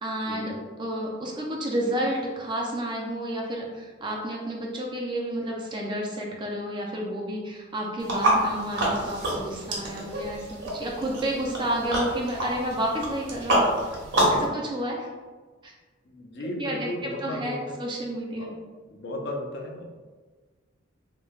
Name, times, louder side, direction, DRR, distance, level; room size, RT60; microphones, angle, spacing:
voice 1, 0.0-14.0 14.5-15.1 15.6-15.7 16.6-18.5, right 1 dB, 25° right, -1 dB, 0.3 m, -31 dB
sound 1, 8.0-14.5, right 1 dB, 60° right, 0.7 m, -27 dB
voice 2, 14.1-14.5 16.0-17.8 18.3-18.5 18.9-19.8, left 1 dB, 60° left, 1 dB, 0.4 m, -35 dB
3.0 x 2.1 x 2.3 m, 1.4 s
head